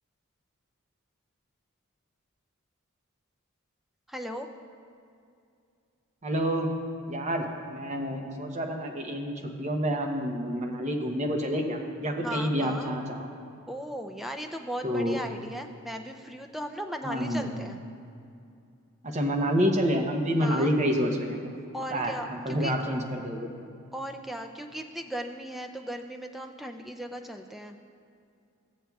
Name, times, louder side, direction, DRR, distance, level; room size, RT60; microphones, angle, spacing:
voice 1, 4.1-4.5 12.2-12.9 13.7-17.8 20.4-20.7 21.7-22.7 23.9-27.8, equal, ahead, 4 dB, 0.3 m, -37 dB
voice 2, 6.2-6.7 7.1-13.3 14.8-15.2 17.0-17.6 19.0-21.4 21.9-23.5, equal, 30° right, 3 dB, 0.8 m, -28 dB
14.5 x 7.4 x 2.3 m, 2.5 s
head